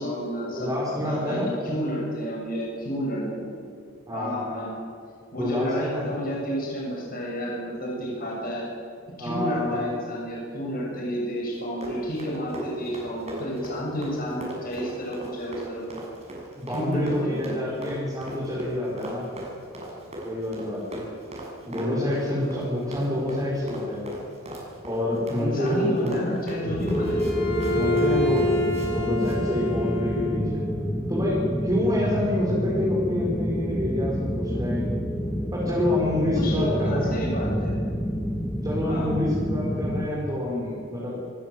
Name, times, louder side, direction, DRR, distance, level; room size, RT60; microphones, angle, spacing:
voice 1, 0.0-0.7 1.0-1.4 1.6-3.5 4.1-4.7 5.3-8.6 9.2-15.8 16.7-17.7 25.4-27.2 36.3-37.8 38.8-39.1, equal, 45° left, -3 dB, 7.4 m, -31 dB
voice 2, 0.5-1.8 4.1-4.4 5.3-6.2 9.2-9.9 16.6-19.3 20.2-21.0 21.7-24.1 24.8-26.2 27.7-28.5 28.9-30.6 31.1-34.9 35.5-37.1 38.6-41.2, left 1 dB, 15° right, -6 dB, 5.7 m, -27 dB
Run, 11.5-28.9 29.2-29.4, right 1 dB, 35° right, 7.0 m, -39 dB
sound 1, 26.6-40.1, equal, 5° left, 1.6 m, -28 dB
Bowed string instrument, 27.0-30.4, left 2 dB, 70° left, 7.3 m, -28 dB
27.0 x 16.5 x 8.1 m, 2.3 s
head